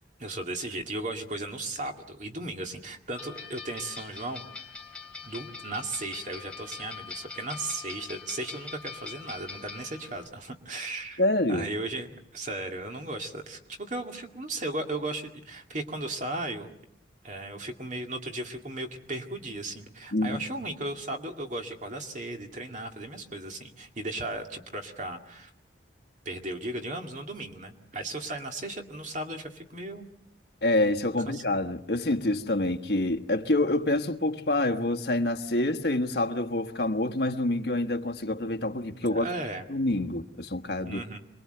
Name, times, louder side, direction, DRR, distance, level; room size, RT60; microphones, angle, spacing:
voice 1, 0.2-4.4 5.2-11.2 11.5-16.7 17.2-25.5 26.3-30.1 31.3-31.4 39.1-39.6 40.8-41.2, right 2 dB, 40° right, 2.2 m, -36 dB
sound 1, 3.2-10.3, left 5 dB, 5° left, 3.7 m, -43 dB
voice 2, 11.2-11.7 20.1-20.4 30.6-39.3 39.7-41.0, left 1 dB, 60° left, 1.4 m, -27 dB
27.0 x 21.5 x 7.9 m
head